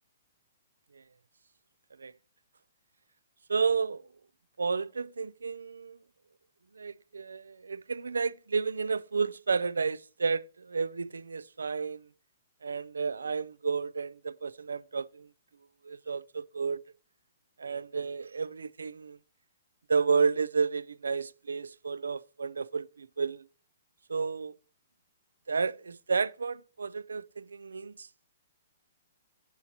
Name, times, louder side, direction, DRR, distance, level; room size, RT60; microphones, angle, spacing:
voice 1, 3.5-4.0 4.6-6.0 6.7-12.1 12.6-15.3 15.8-16.8 17.6-19.2 19.9-23.5 24.1-24.5 25.5-28.1, right 5 dB, 85° right, 0.3 m, -31 dB
8.2 x 5.9 x 4.2 m
hypercardioid pair, 125°, 0 cm